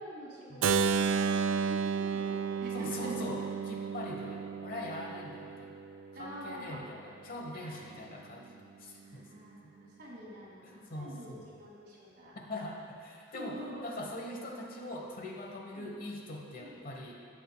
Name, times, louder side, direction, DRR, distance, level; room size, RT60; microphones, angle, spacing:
voice 1, 0.0-3.2 4.0-4.3 5.2-5.3 6.1-6.8 7.6-7.8 8.9-12.4 13.3-13.8 15.8-15.9 16.6-16.8, equal, 55° right, -6 dB, 2.2 m, -47 dB
Keyboard (musical), 0.6-6.5, right 6 dB, 90° right, 0.3 m, -32 dB
voice 2, 2.7-5.8 6.2-9.3 9.6-9.7 10.6-11.4 12.3-17.1, left 1 dB, 50° left, -1 dB, 1.0 m, -42 dB
16.5 x 6.3 x 2.2 m, 2.4 s
head